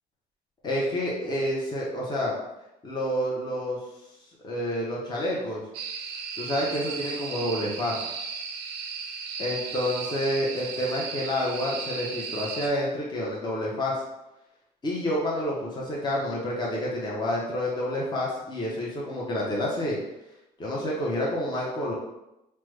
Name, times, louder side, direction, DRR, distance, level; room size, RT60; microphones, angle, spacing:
voice 1, 0.6-2.3 2.8-3.8 4.4-5.6 6.4-8.0 9.4-14.0 14.8-20.0 20.6-21.9, left 1 dB, 25° left, -4 dB, 0.7 m, -28 dB
sound 1, 5.7-12.7, right 5 dB, 75° right, 0.5 m, -35 dB
3.2 x 2.0 x 3.2 m, 0.91 s
cardioid pair, 110°, 17 cm